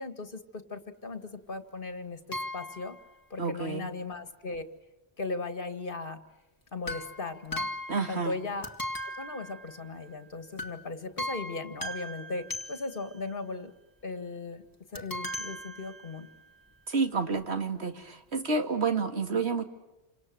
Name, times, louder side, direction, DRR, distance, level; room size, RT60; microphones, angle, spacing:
voice 1, 0.0-3.0 3.3-4.7 5.2-6.2 6.7-7.7 8.1-8.7 9.2-13.7 14.0-14.6 14.9-16.3, left 3 dB, 55° left, 8 dB, 2.1 m, -37 dB
sound 1, 2.3-3.0 6.8-8.4 8.6-10.1 10.6-10.8 11.2-13.2 14.9-16.4 17.1-17.2 17.4-17.5, left 1 dB, 20° left, 2.2 m, -38 dB
voice 2, 3.4-3.9 7.9-8.4 16.9-19.6, right 4 dB, 80° right, 6 dB, 2.3 m, -29 dB
29.0 x 26.0 x 7.7 m, 1.0 s
omnidirectional pair, 1.1 m